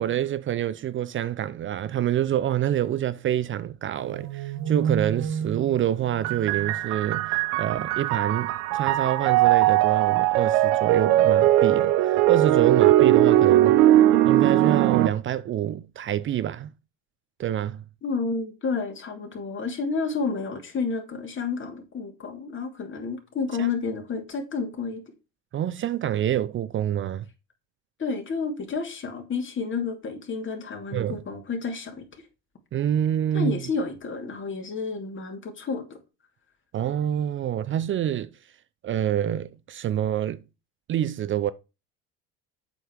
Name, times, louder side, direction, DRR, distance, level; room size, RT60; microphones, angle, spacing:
voice 1, 0.0-13.7 14.2-16.7 17.4-17.8 23.6-23.7 25.5-27.3 30.9-31.2 32.7-33.6 36.7-38.3 38.8-40.4 40.9-41.5, right 11 dB, 40° right, 0.6 m, -27 dB
sound 1, 4.0-7.4, right 7 dB, 55° right, 1.1 m, -31 dB
sound 2, 6.2-15.1, right 14 dB, 80° right, 0.8 m, -20 dB
voice 2, 18.0-25.0 28.0-32.1 33.3-36.0, left 4 dB, 40° left, 2.7 m, -30 dB
8.0 x 5.4 x 4.6 m
supercardioid pair, 90°, 31 cm